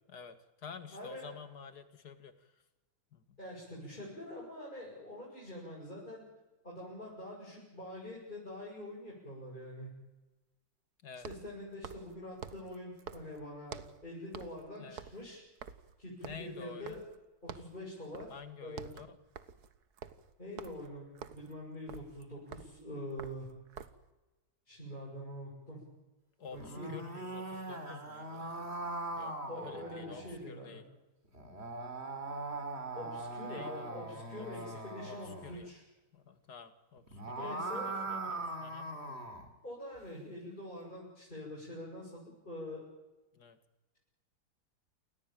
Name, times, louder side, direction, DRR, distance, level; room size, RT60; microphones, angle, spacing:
voice 1, 0.1-2.5 3.1-3.4 11.0-11.3 14.8-15.0 16.2-17.0 18.3-19.2 26.4-28.5 29.2-30.8 33.5-34.5 34.7-35.7 36.1-37.5 37.8-38.9 43.3-43.6, left 6 dB, 75° left, 10 dB, 2.4 m, -50 dB
voice 2, 0.9-1.4 3.4-6.2 6.6-9.9 11.2-15.4 16.0-17.0 17.4-18.3 18.6-18.9 20.4-23.5 24.7-25.8 26.5-26.9 29.5-30.8 32.9-35.8 37.4-37.9 39.6-42.8, left 1 dB, 30° left, -5 dB, 8.0 m, -45 dB
sound 1, 7.8-7.9 11.1-14.0 14.3-14.7 14.9-17.2 17.5-17.8 18.1-18.4 18.7-24.1, right 7 dB, 70° right, 1.7 m, -49 dB
sound 2, 26.5-30.4 31.3-35.6 37.0-39.5, right 2 dB, 40° right, 3.6 m, -41 dB
28.5 x 16.0 x 9.1 m, 1.1 s
omnidirectional pair, 1.7 m